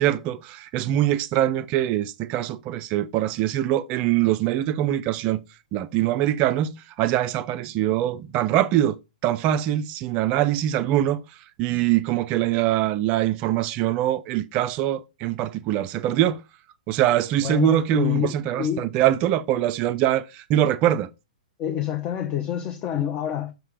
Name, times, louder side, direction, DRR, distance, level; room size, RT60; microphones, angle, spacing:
voice 1, 0.0-5.4 5.7-11.2 11.6-16.4 16.9-21.1, right 12 dB, 30° right, 0.4 m, -23 dB
voice 2, 17.4-18.3 18.6-18.9 21.6-23.5, left 10 dB, 25° left, 0.7 m, -27 dB
6.4 x 3.3 x 4.7 m
figure-of-eight pair, 110°, 4 cm